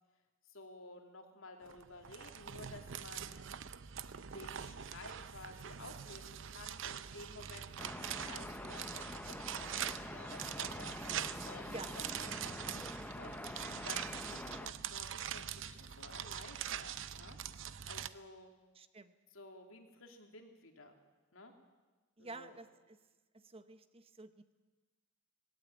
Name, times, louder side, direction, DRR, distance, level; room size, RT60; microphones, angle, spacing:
voice 1, 0.4-3.4 4.0-7.7 8.0-11.0 11.3-12.4 12.8-17.4 17.9-18.5 19.3-20.9 21.3-21.5 22.2-22.6, left 2 dB, 75° left, 3 dB, 2.9 m, -53 dB
sound 1, 1.6-18.1, right 9 dB, 65° right, 0.7 m, -44 dB
sound 2, 7.8-14.7, left 1 dB, 10° left, 0.8 m, -46 dB
voice 2, 18.7-19.1 22.2-23.0 23.3-24.5, right 3 dB, 30° right, 11 dB, 0.9 m, -50 dB
19.0 x 18.0 x 8.8 m, 1.3 s
head